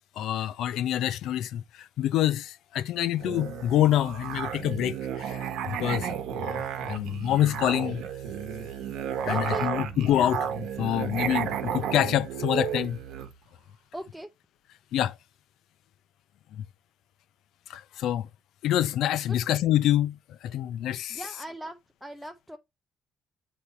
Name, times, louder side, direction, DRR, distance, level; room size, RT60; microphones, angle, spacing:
voice 1, 0.2-8.0 9.2-10.5 10.8-13.0 14.9-15.2 16.5-16.6 17.7-18.3 18.6-21.2, left 12 dB, 75° left, 0.6 m, -27 dB
Musical instrument, 3.2-13.3, right 8 dB, 85° right, 1.1 m, -33 dB
voice 2, 9.3-9.7 13.9-14.3 19.3-19.4 21.1-22.6, right 1 dB, 5° right, 0.5 m, -38 dB
8.3 x 3.1 x 5.3 m
cardioid pair, 165°, 0 cm